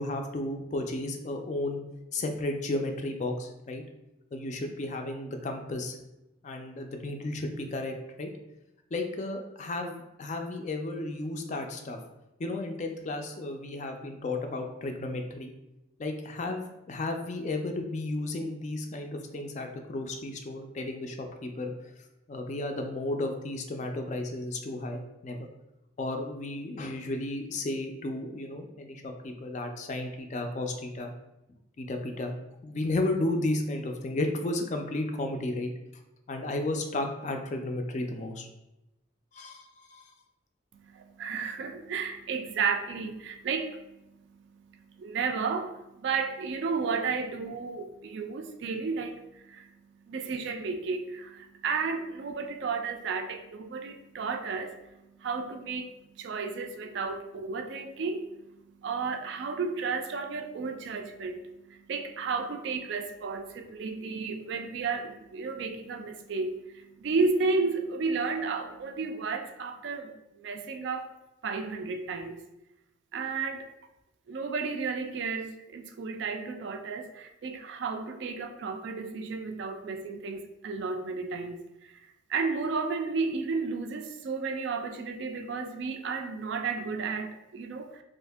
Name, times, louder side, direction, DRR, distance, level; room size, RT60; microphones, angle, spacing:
voice 1, 0.0-1.8 2.1-3.8 4.3-6.0 6.4-8.3 8.9-12.0 12.4-15.5 16.0-21.7 22.3-25.5 26.0-31.1 31.8-32.3 32.6-35.7 36.3-38.5 39.3-40.1, left 2 dB, 35° left, 4 dB, 0.3 m, -33 dB
voice 2, 40.7-71.1 71.4-72.4 73.1-73.7 74.3-81.9 82.3-88.0, right 4 dB, 60° right, 6 dB, 0.3 m, -33 dB
2.7 x 2.5 x 3.4 m, 0.93 s
head